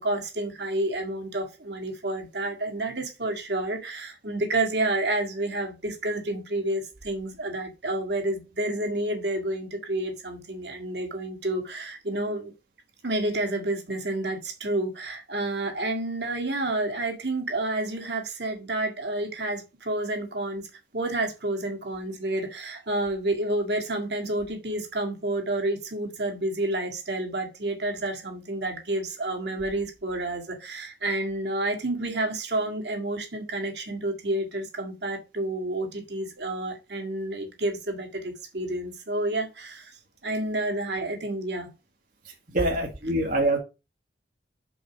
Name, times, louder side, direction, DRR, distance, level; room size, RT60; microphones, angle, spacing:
voice 1, 0.0-12.5 13.0-20.7 20.9-40.0 40.2-41.7, right 2 dB, 70° right, 2.0 m, -29 dB
voice 2, 42.2-43.6, right 1 dB, 50° right, 1.6 m, -25 dB
5.3 x 4.5 x 5.9 m
head